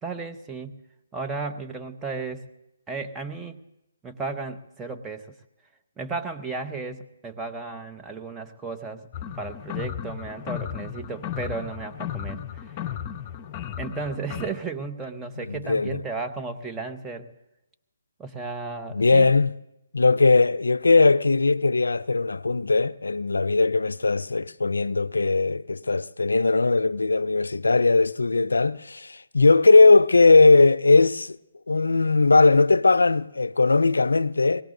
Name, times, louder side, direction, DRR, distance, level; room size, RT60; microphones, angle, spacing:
voice 1, 0.0-0.8 1.1-2.4 2.9-3.6 4.0-5.3 6.0-9.1 9.4-12.7 13.8-17.3 18.2-19.3, right 4 dB, 10° right, 1.0 m, -34 dB
sound 1, 9.1-14.5, left 10 dB, 30° left, 0.8 m, -35 dB
voice 2, 15.4-16.0 18.9-19.5 19.9-31.4 31.7-34.6, left 3 dB, 80° left, 0.4 m, -19 dB
23.0 x 18.0 x 2.6 m
figure-of-eight pair, 140°, 0 cm